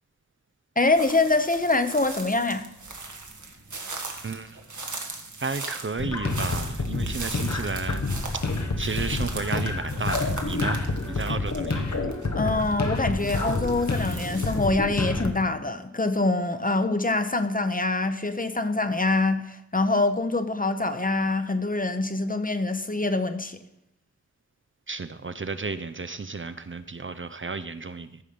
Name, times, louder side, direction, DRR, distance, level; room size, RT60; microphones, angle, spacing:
voice 1, 0.8-2.7 12.3-23.6, left 2 dB, 30° left, 9 dB, 0.8 m, -25 dB
sound 1, 0.9-14.7, right 3 dB, 80° right, 1.4 m, -39 dB
voice 2, 4.2-4.6 5.4-8.1 8.3-11.9 24.9-28.2, right 4 dB, 45° right, 11 dB, 0.5 m, -33 dB
sound 2, 6.0-15.3, left 3 dB, 70° left, 1.1 m, -28 dB
14.0 x 5.5 x 5.1 m, 0.80 s
wide cardioid pair, 55°, 29 cm